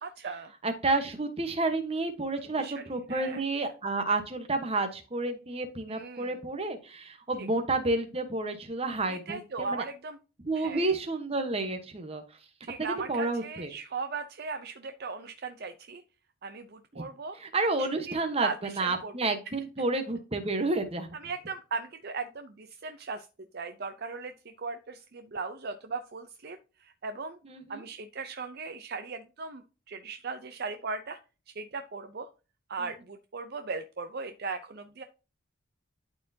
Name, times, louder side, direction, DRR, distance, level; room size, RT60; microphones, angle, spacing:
voice 1, 0.0-0.5 2.6-2.8 3.1-3.4 5.9-6.4 7.4-7.5 9.1-10.2 10.5-10.9 12.6-16.0 16.4-17.4 17.8-18.2 18.4-19.1 21.1-23.3 23.5-27.4 27.7-31.2 31.5-32.3 32.7-35.0, right 4 dB, 45° right, 9 dB, 0.5 m, -38 dB
voice 2, 0.6-9.8 10.4-12.2 12.8-13.7 17.4-18.5 18.8-21.1 27.5-27.8, right 2 dB, 25° right, 7 dB, 1.0 m, -30 dB
12.0 x 4.4 x 2.7 m, 0.32 s
head